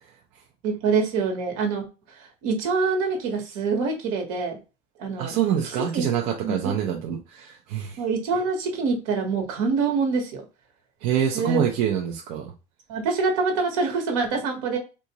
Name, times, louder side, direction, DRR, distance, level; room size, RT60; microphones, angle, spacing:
voice 1, 0.6-4.6 5.0-5.4 5.6-6.0 6.4-6.7 8.0-10.4 11.3-11.6 12.9-14.8, right 4 dB, 80° right, 2 dB, 1.2 m, -25 dB
voice 2, 5.2-8.0 11.0-12.5, right 9 dB, 55° right, 1 dB, 0.6 m, -26 dB
3.8 x 2.4 x 2.9 m, 0.30 s
cardioid pair, 175°, 17 cm